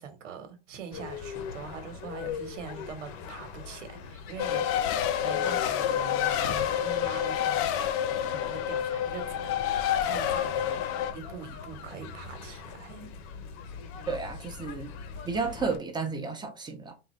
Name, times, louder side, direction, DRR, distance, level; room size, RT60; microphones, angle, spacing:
voice 1, 0.0-4.7 5.2-9.6 10.0-13.1, right 6 dB, 90° right, 1.4 m, -43 dB
sound 1, 0.9-15.8, left 6 dB, 55° left, 1.0 m, -42 dB
Race car auto racing, 4.4-11.1, left 10 dB, 40° left, 0.6 m, -28 dB
voice 2, 14.1-14.9 15.2-16.9, right 4 dB, 10° right, 0.9 m, -32 dB
3.8 x 2.5 x 4.3 m
supercardioid pair, 130°, 36 cm